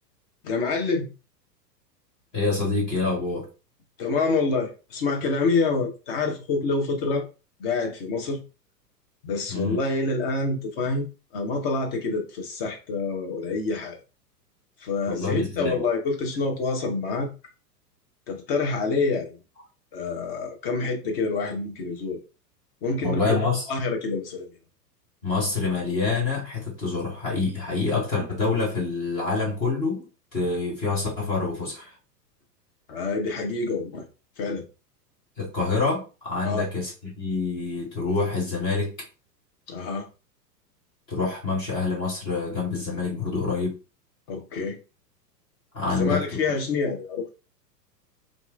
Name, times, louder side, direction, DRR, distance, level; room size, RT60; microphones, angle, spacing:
voice 1, 0.4-1.1 4.0-7.3 7.6-8.4 9.2-14.0 14.8-17.3 18.3-19.4 19.9-22.2 22.8-24.5 32.9-34.0 34.4-34.6 36.4-36.7 39.7-40.1 44.3-44.8 45.9-47.3, left 3 dB, 35° left, 0.8 m, -27 dB
voice 2, 2.3-3.5 9.5-9.8 15.1-15.9 23.0-23.6 25.2-30.0 30.3-31.9 35.4-36.9 37.2-38.9 41.1-43.8 45.7-46.2, left 4 dB, 10° left, 0.4 m, -26 dB
2.8 x 2.4 x 2.5 m
figure-of-eight pair, 100°, 50 cm